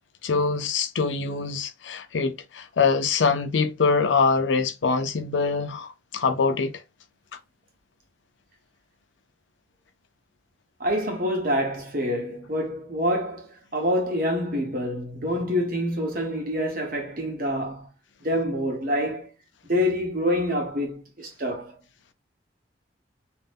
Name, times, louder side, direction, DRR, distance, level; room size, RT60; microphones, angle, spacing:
voice 1, 0.2-6.8, left 4 dB, 85° left, 0.5 m, -24 dB
voice 2, 10.8-17.9 18.2-19.3 19.6-21.7, equal, 50° right, 0.9 m, -26 dB
2.6 x 2.1 x 3.4 m
head